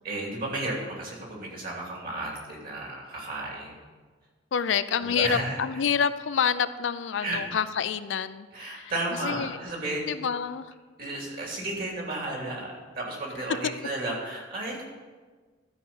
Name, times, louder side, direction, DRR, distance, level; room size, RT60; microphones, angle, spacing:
voice 1, 0.0-3.8 5.0-5.6 7.2-7.4 8.5-10.1 11.0-14.8, right 2 dB, 50° right, -2 dB, 2.9 m, -33 dB
voice 2, 4.5-8.9 9.2-9.6 10.0-10.7, left 7 dB, 70° left, 13 dB, 0.4 m, -28 dB
12.5 x 5.0 x 7.1 m, 1.4 s
head